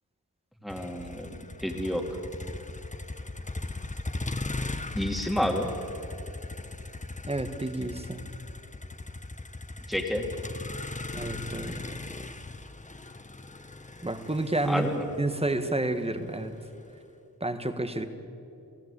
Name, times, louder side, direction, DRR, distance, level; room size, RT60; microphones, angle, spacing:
voice 1, 0.6-2.1 4.9-5.7 9.9-10.3 14.6-15.0, equal, ahead, 2 dB, 2.5 m, -30 dB
Motor vehicle (road), 0.7-16.8, left 2 dB, 20° left, 1.0 m, -38 dB
voice 2, 7.3-8.2 11.1-11.9 14.0-14.9 15.2-16.5 17.4-18.1, right 2 dB, 15° right, 8 dB, 1.5 m, -30 dB
28.5 x 17.0 x 8.4 m, 2.8 s
wide cardioid pair, 100°, 37 cm